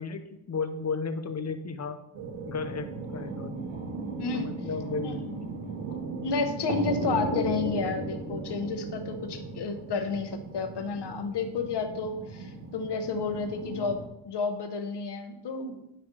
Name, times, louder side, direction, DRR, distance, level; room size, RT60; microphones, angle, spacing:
voice 1, 0.0-2.0 2.5-3.6 4.3-5.3 5.9-6.0, left 4 dB, 35° left, 8 dB, 0.7 m, -34 dB
sound 1, 2.1-14.1, right 3 dB, 80° right, 1.4 m, -36 dB
voice 2, 4.2-4.5 5.0-5.2 6.2-14.0 14.2-15.9, left 4 dB, 55° left, 7 dB, 1.0 m, -31 dB
9.9 x 3.4 x 4.8 m, 0.85 s
wide cardioid pair, 125°, 49 cm